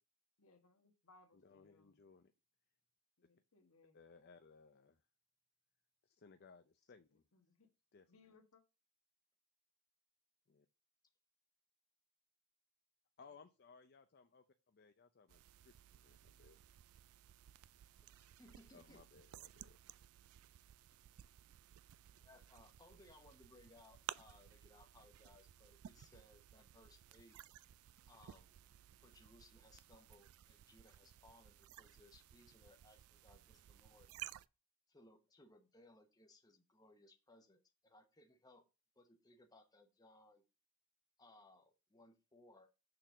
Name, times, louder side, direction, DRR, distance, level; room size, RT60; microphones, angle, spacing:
voice 1, 0.4-2.0 3.2-4.0 7.3-7.7 8.1-8.6, left 3 dB, 65° left, 1.4 m, -68 dB
voice 2, 1.3-2.3 3.9-5.0 6.0-7.2 7.9-8.1 10.5-10.7 13.2-16.6 18.7-19.8, left 5 dB, 45° left, 0.5 m, -63 dB
sound 1, 15.3-34.5, right 12 dB, 70° right, 0.3 m, -57 dB
voice 3, 18.0-19.0 22.1-27.4 28.1-28.6 29.0-34.1 34.9-38.6 38.9-40.4 41.2-42.7, left 2 dB, 15° left, 0.9 m, -65 dB
6.7 x 3.9 x 6.0 m
head